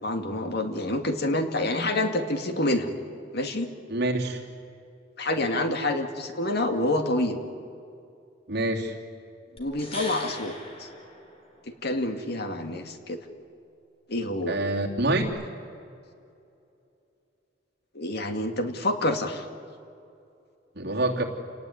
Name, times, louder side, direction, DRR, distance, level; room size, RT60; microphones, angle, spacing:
voice 1, 0.0-2.9 3.3-3.7 5.2-7.4 9.5-10.9 11.8-13.2 14.1-14.6 17.9-19.5, left 1 dB, 60° left, 6 dB, 2.3 m, -27 dB
voice 2, 3.9-4.4 8.5-8.9 14.5-15.3 20.8-21.2, right 2 dB, 60° right, 0 dB, 3.1 m, -26 dB
sound 1, 9.6-11.8 15.2-15.3, left 1 dB, 30° left, 4.5 m, -40 dB
29.0 x 19.0 x 9.6 m, 2.6 s
head